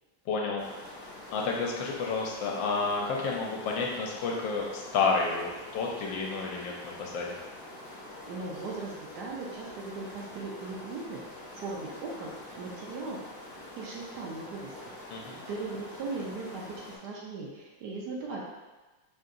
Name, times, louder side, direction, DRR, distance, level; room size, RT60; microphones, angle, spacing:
voice 1, 0.3-0.9 1.3-7.4 15.1-15.4, left 4 dB, 80° left, -1 dB, 1.4 m, -30 dB
sound 1, 0.6-17.0, left 1 dB, 45° left, 0.9 m, -46 dB
voice 2, 8.3-13.2 13.8-15.0 15.3-18.4, right 3 dB, 70° right, -3 dB, 1.1 m, -38 dB
5.1 x 2.8 x 2.5 m, 1.2 s
omnidirectional pair, 2.1 m